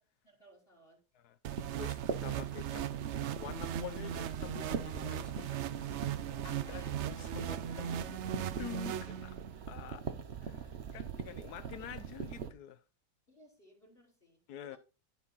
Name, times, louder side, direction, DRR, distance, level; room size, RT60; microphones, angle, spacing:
voice 1, 0.2-1.0 6.4-7.0 7.3-8.2 11.7-11.9 13.3-14.8, equal, 35° left, 2.8 m, -59 dB
sound 1, 1.4-9.6, right 10 dB, 70° right, 0.6 m, -39 dB
sound 2, 1.5-12.5, right 7 dB, 45° right, 1.0 m, -42 dB
voice 2, 1.8-2.9 3.4-5.6 6.3-10.1 10.4-12.8 14.5-14.8, left 10 dB, 70° left, 1.3 m, -47 dB
12.0 x 5.9 x 4.1 m
omnidirectional pair, 1.8 m